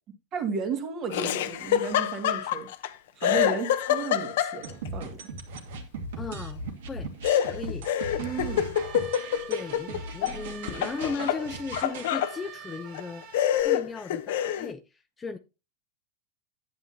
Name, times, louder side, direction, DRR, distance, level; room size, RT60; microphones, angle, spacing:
voice 1, 0.3-2.7 3.2-5.3 8.2-8.8, right 5 dB, 30° right, 2.1 m, -33 dB
Laughter, 1.1-2.9 3.2-4.9 7.2-10.4 10.7-12.4 12.9-13.0 13.3-14.7, left 10 dB, 75° left, 0.8 m, -27 dB
sound 1, 4.6-12.1, right 3 dB, 90° right, 2.6 m, -38 dB
voice 2, 6.2-6.6 6.9-7.1 7.4-7.9 9.5-13.2 13.5-15.4, left 4 dB, 15° left, 0.4 m, -36 dB
sound 2, 8.0-13.6, right 7 dB, 50° right, 2.0 m, -46 dB
10.5 x 9.5 x 2.8 m
supercardioid pair, 165°, 0 cm